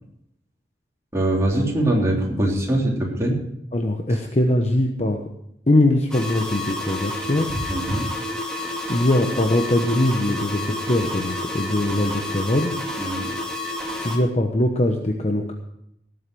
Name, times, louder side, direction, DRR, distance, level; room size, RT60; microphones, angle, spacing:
voice 1, 1.1-3.3 7.7-8.3 13.0-13.3, right 1 dB, 15° right, -3 dB, 3.4 m, -22 dB
voice 2, 3.7-5.2 5.7-7.5 8.9-12.7 14.0-15.5, left 1 dB, 40° left, 3 dB, 1.1 m, -21 dB
sound 1, 6.1-14.2, left 2 dB, 5° left, 2.3 m, -30 dB
18.0 x 8.0 x 6.1 m, 0.78 s
head